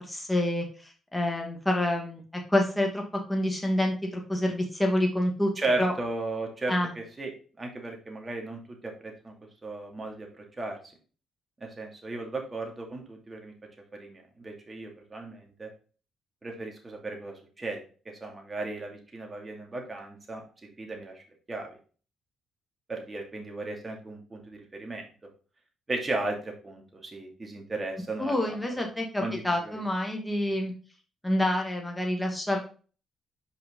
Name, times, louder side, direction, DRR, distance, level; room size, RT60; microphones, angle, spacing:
voice 1, 0.1-0.7 1.1-2.2 2.5-3.0 3.3-5.5 5.8-5.9 6.7-6.9 28.2-30.7 31.2-32.6, left 1 dB, 10° left, 1 dB, 1.9 m, -27 dB
voice 2, 5.6-7.3 7.6-9.3 9.6-10.8 11.6-13.5 13.9-15.7 16.4-17.8 18.1-20.4 20.8-21.2 21.5-21.8 22.9-25.0 25.9-28.7 29.2-29.8, right 2 dB, 25° right, 1 dB, 2.3 m, -35 dB
5.4 x 5.3 x 3.7 m, 0.38 s
cardioid pair, 90°, 0 cm